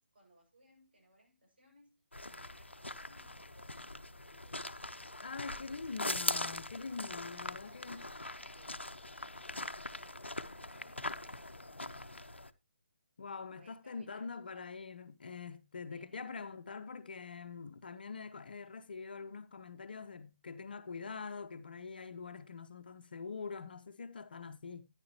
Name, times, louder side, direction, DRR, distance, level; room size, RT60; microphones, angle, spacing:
voice 1, 0.0-4.8 7.1-8.8 9.1-12.3 13.5-14.7 15.9-16.2, right 1 dB, 60° right, 7.0 m, -65 dB
sound 1, 2.1-12.5, left 2 dB, 85° left, 0.8 m, -42 dB
voice 2, 5.2-8.1 13.2-24.8, left 5 dB, 55° left, 0.9 m, -44 dB
12.5 x 10.0 x 3.0 m
figure-of-eight pair, 145°, 6 cm